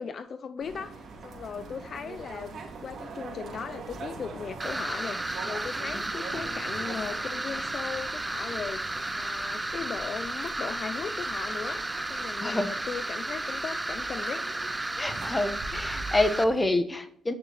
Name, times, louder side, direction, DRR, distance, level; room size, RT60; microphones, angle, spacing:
voice 1, 0.0-14.5, left 6 dB, 50° left, 12 dB, 0.5 m, -38 dB
sound 1, 0.6-16.7, right 4 dB, 60° right, 2.8 m, -43 dB
sound 2, 4.6-16.4, right 2 dB, 15° right, 0.6 m, -33 dB
voice 2, 12.4-12.7 15.0-17.3, left 2 dB, 15° left, 10 dB, 1.2 m, -27 dB
9.3 x 6.7 x 4.4 m, 0.64 s
cardioid pair, 90°, 0 cm